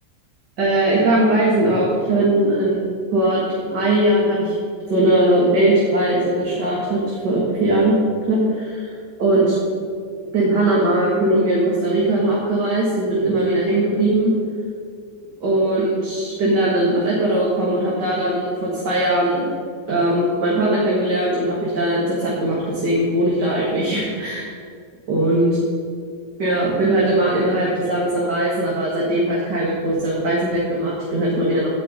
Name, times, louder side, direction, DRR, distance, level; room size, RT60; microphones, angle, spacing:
voice 1, 0.6-4.5 4.9-7.9 8.3-8.6 9.2-9.5 10.3-14.3 15.4-19.5 19.9-24.5 25.1-25.5 26.4-31.7, right 1 dB, 85° right, -5 dB, 2.4 m, -19 dB
16.0 x 5.7 x 5.1 m, 2.3 s
omnidirectional pair, 1.8 m